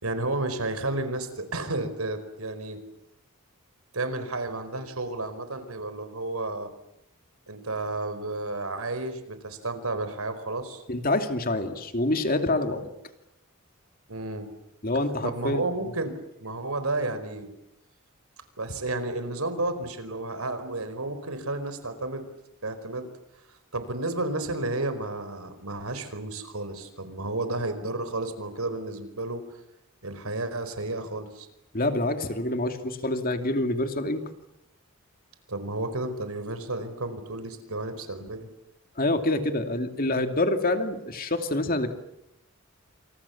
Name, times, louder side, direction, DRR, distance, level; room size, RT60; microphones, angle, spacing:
voice 1, 0.0-2.8 3.9-6.7 7.5-10.8 12.8-12.9 14.1-14.5 15.2-17.5 18.6-22.2 22.6-23.1 23.7-29.4 30.0-31.5 35.5-38.5, right 2 dB, 90° right, 10 dB, 4.9 m, -32 dB
voice 2, 10.9-12.9 14.8-15.6 31.7-34.2 39.0-41.9, left 2 dB, 40° left, 6 dB, 2.7 m, -26 dB
28.5 x 28.0 x 7.2 m, 0.83 s
head